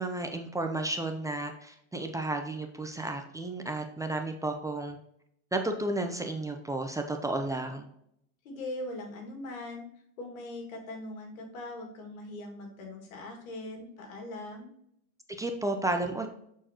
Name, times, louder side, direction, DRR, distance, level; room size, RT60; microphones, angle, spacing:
voice 1, 0.0-5.0 5.5-7.9 15.4-16.3, right 2 dB, 10° right, 4 dB, 0.5 m, -32 dB
voice 2, 8.4-9.9 10.2-14.7, left 1 dB, 85° left, 2 dB, 2.2 m, -41 dB
7.6 x 4.5 x 2.9 m, 0.74 s
supercardioid pair, 115°, 40 cm